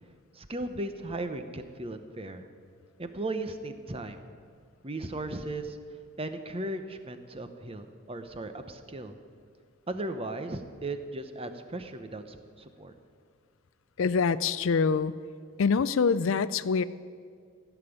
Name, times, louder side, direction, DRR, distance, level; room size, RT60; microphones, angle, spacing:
voice 1, 0.3-2.5 3.0-4.2 4.8-5.8 6.2-9.1 9.9-12.9, right 2 dB, 25° right, 8 dB, 0.9 m, -36 dB
voice 2, 14.0-15.1 15.6-16.8, left 5 dB, 65° left, 16 dB, 0.4 m, -25 dB
15.0 x 7.1 x 10.0 m, 2.1 s
head